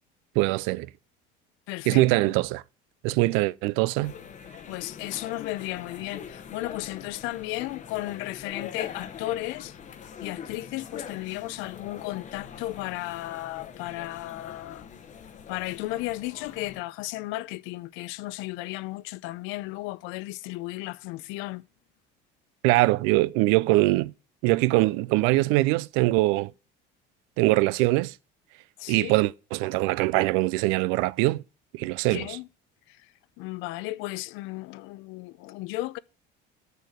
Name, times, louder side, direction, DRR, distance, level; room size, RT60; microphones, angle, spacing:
voice 1, 0.4-0.9 1.9-2.6 3.0-4.1 22.6-24.1 24.4-26.5 27.4-28.1 28.9-31.4 31.7-32.3, right 20 dB, 85° right, 0.4 m, -22 dB
voice 2, 1.7-2.3 4.7-9.8 10.2-14.9 15.5-21.6 28.8-29.2 32.1-32.5 32.9-33.1 33.4-36.0, left 18 dB, 75° left, 0.5 m, -34 dB
sound 1, 4.0-16.8, left 7 dB, 35° left, 0.9 m, -43 dB
6.6 x 6.4 x 6.5 m
cardioid pair, 130°, 20 cm